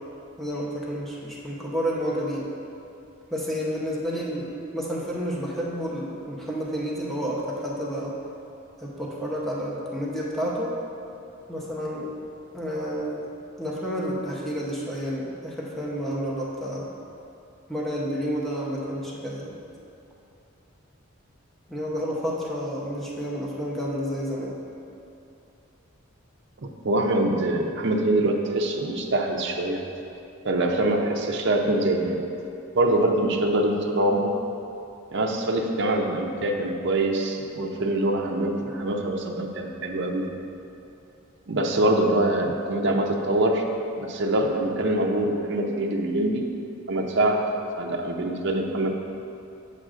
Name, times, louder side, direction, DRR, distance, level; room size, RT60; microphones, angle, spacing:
voice 1, 0.4-2.5 3.3-8.1 8.8-10.7 11.5-12.1 12.5-13.3 13.6-16.9 17.7-19.6 21.7-24.6, equal, ahead, -6 dB, 0.8 m, -30 dB
voice 2, 26.6-29.8 30.4-32.2 32.8-34.4 35.1-40.3 41.5-43.7 44.0-46.5 46.9-47.4 47.8-48.9, right 1 dB, 60° right, 2 dB, 0.6 m, -24 dB
8.4 x 7.6 x 2.5 m, 2.8 s
head